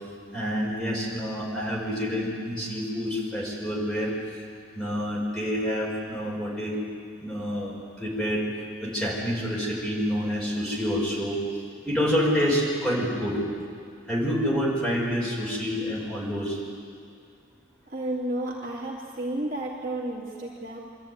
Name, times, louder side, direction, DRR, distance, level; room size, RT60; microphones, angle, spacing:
voice 1, 0.3-4.1 4.7-6.7 7.2-8.4 8.8-11.4 11.8-13.4 14.1-16.6, equal, 5° left, -6 dB, 5.1 m, -27 dB
voice 2, 17.9-20.8, right 1 dB, 45° right, -4 dB, 2.4 m, -32 dB
24.5 x 13.5 x 9.6 m, 2.2 s
head